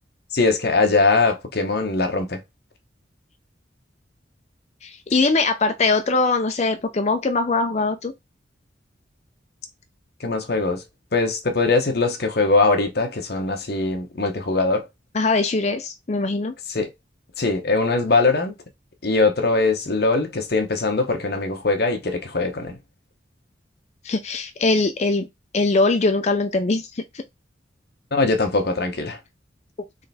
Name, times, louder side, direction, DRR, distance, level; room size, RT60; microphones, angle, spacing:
voice 1, 0.3-2.4 10.2-10.8 11.1-14.9 16.7-16.9 17.4-18.6 19.0-22.8 28.1-29.2, left 3 dB, 55° left, 1.0 m, -21 dB
voice 2, 4.8-8.1 15.1-16.5 24.0-25.3 25.5-27.0, left 3 dB, 35° left, 0.5 m, -21 dB
3.8 x 3.4 x 4.1 m
head